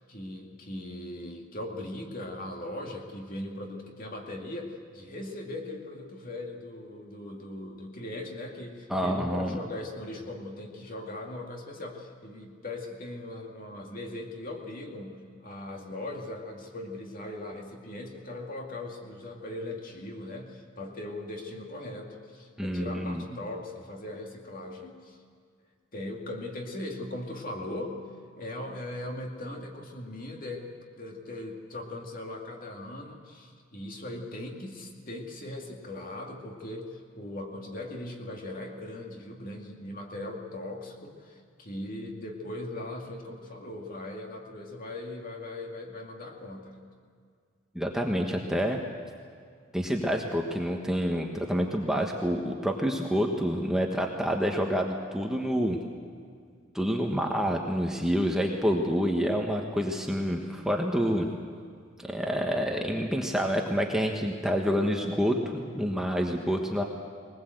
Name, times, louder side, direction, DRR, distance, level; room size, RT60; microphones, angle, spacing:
voice 1, 0.1-25.2 25.9-28.0 28.4-30.7 31.0-46.8, left 1 dB, 45° left, 1 dB, 2.3 m, -39 dB
voice 2, 8.9-9.6 22.6-23.2 47.7-48.8 49.7-55.8 56.7-61.3 62.0-66.8, equal, 5° right, 1 dB, 1.3 m, -28 dB
21.0 x 20.0 x 7.9 m, 2.1 s
head